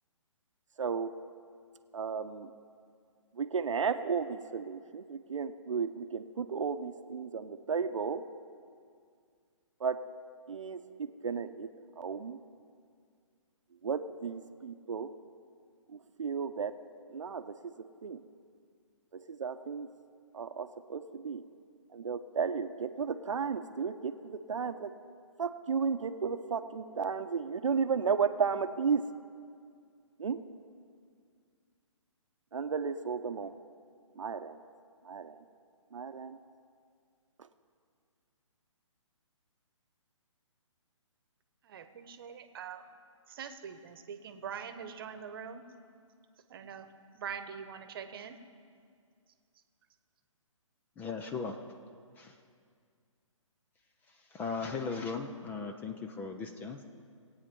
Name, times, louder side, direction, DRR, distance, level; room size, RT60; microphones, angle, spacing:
voice 1, 0.8-1.1 1.9-2.5 3.3-8.2 9.8-10.0 10.5-11.7 12.0-12.4 13.8-15.1 15.9-16.7 17.1-17.7 18.0-18.2 19.1-19.9 20.3-21.4 21.9-24.9 25.4-29.0 30.2-30.4 32.5-33.5 34.2-34.6 35.0-35.4 35.9-36.4, right 6 dB, 70° right, 9 dB, 0.8 m, -34 dB
voice 2, 41.7-42.8 43.3-45.6 46.5-46.9 47.1-48.4, right 7 dB, 45° right, 9 dB, 1.1 m, -43 dB
voice 3, 51.0-51.6 52.2-52.4 54.3-56.8, left 4 dB, 10° left, 5 dB, 0.5 m, -37 dB
20.0 x 8.8 x 5.3 m, 2.2 s
figure-of-eight pair, 140°, 17 cm